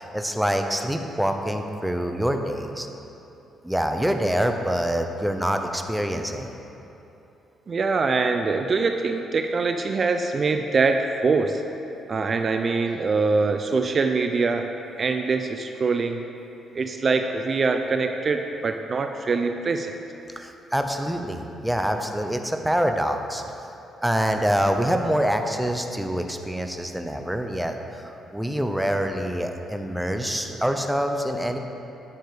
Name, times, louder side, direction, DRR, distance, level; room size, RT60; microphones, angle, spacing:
voice 1, 0.0-2.9 3.6-6.5 20.4-23.4 24.0-31.6, equal, 5° right, 5 dB, 0.7 m, -25 dB
voice 2, 7.7-11.6 12.1-14.7 15.0-16.2 16.7-19.9 30.5-30.6, right 4 dB, 40° right, 6 dB, 0.5 m, -23 dB
9.5 x 6.8 x 5.0 m, 2.9 s
cardioid pair, 90°, 0 cm